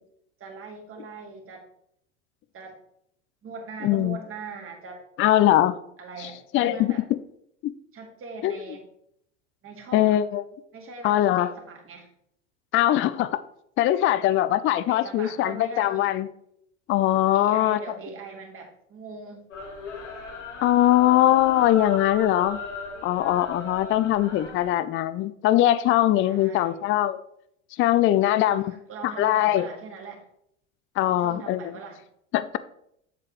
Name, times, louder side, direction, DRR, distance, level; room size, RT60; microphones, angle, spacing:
voice 1, 0.4-1.6 2.5-2.8 3.4-5.0 6.0-7.0 7.9-8.9 9.6-10.2 10.7-12.1 14.8-16.1 17.3-19.5 26.2-26.8 28.4-30.3 31.0-32.0, right 4 dB, 35° right, 2 dB, 2.2 m, -41 dB
voice 2, 3.8-4.2 5.2-5.8 6.2-6.3 6.5-6.9 7.6-7.7 8.4-8.5 9.9-10.4 11.0-11.5 12.7-13.3 13.8-16.3 16.9-17.8 20.6-22.6 23.0-27.2 27.8-28.7 29.0-29.7 31.0-31.6 32.3-32.6, left 13 dB, 35° left, 14 dB, 0.5 m, -21 dB
sound 1, 19.5-24.7, left 2 dB, 90° left, 1.8 m, -38 dB
7.6 x 7.6 x 3.1 m, 0.74 s
hypercardioid pair, 80°, 36 cm